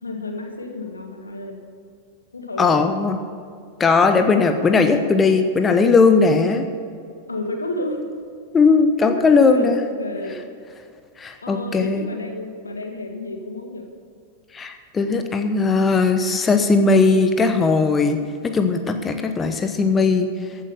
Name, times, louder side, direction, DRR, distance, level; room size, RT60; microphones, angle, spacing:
voice 1, 0.0-1.6 2.3-2.8 7.3-8.1 9.0-10.4 11.4-13.9, left 2 dB, 75° left, 3 dB, 1.9 m, -31 dB
voice 2, 2.6-3.2 3.8-6.7 8.5-9.8 11.2-12.1 14.5-20.3, left 4 dB, 20° left, 7 dB, 1.0 m, -18 dB
15.0 x 8.8 x 6.9 m, 2.4 s
figure-of-eight pair, 90°, 0 cm